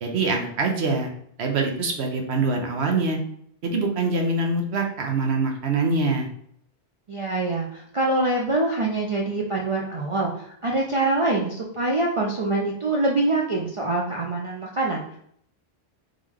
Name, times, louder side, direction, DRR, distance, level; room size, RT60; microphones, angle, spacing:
voice 1, 0.0-1.1 1.4-3.2 3.6-6.3, right 3 dB, 80° right, 2 dB, 1.0 m, -24 dB
voice 2, 7.1-15.2, right 2 dB, 45° right, -2 dB, 0.4 m, -25 dB
3.7 x 3.2 x 3.5 m, 0.67 s
omnidirectional pair, 1.1 m